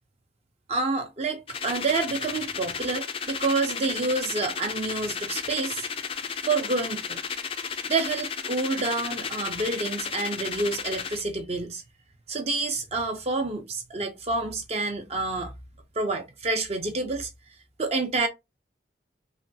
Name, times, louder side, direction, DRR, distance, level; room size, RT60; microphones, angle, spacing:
voice 1, 0.7-5.9 6.4-7.2 7.8-11.8 12.3-15.5 16.0-17.3 17.8-18.3, right 3 dB, 35° right, 0.5 m, -28 dB
sound 1, 1.5-11.2, left 6 dB, 30° left, 0.3 m, -33 dB
3.1 x 2.2 x 2.6 m
head